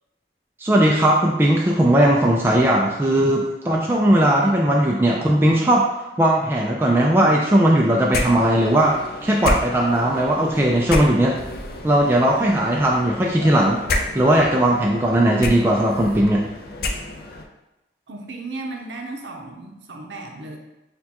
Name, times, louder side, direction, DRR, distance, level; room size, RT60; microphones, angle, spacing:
voice 1, 0.6-5.9 6.2-8.9 9.2-11.4 11.8-13.8 14.1-16.4, right 1 dB, 15° right, -2 dB, 0.3 m, -18 dB
sound 1, 8.1-17.5, left 2 dB, 55° left, 0.5 m, -30 dB
voice 2, 18.1-20.6, right 2 dB, 85° right, 2 dB, 0.6 m, -35 dB
6.5 x 2.3 x 2.9 m, 0.95 s
head